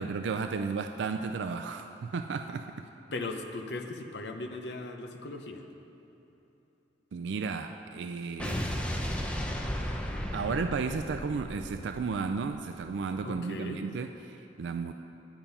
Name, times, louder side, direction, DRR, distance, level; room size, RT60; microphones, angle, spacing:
voice 1, 0.0-2.9 7.1-8.6 10.3-14.9, right 5 dB, 80° right, 7 dB, 0.4 m, -33 dB
voice 2, 3.1-5.7 13.2-13.8, left 2 dB, 65° left, 5 dB, 0.8 m, -38 dB
Explosion, 8.4-12.7, equal, 5° left, 0.6 m, -34 dB
10.0 x 9.0 x 5.5 m, 2.9 s
head